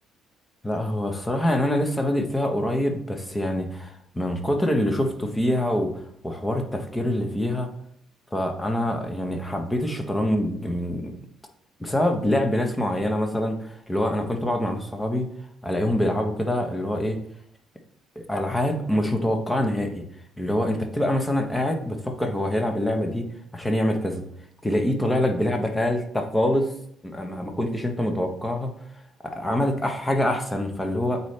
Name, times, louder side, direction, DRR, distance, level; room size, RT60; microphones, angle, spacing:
voice 1, 0.6-5.9 6.2-7.7 8.3-11.1 11.8-15.3 15.6-17.2 18.2-20.0 20.4-23.3 23.5-24.2 24.6-26.7 27.0-28.7 29.2-31.2, left 1 dB, 10° left, 4 dB, 0.9 m, -25 dB
8.2 x 4.1 x 3.2 m, 0.69 s
cardioid pair, 110°, 0 cm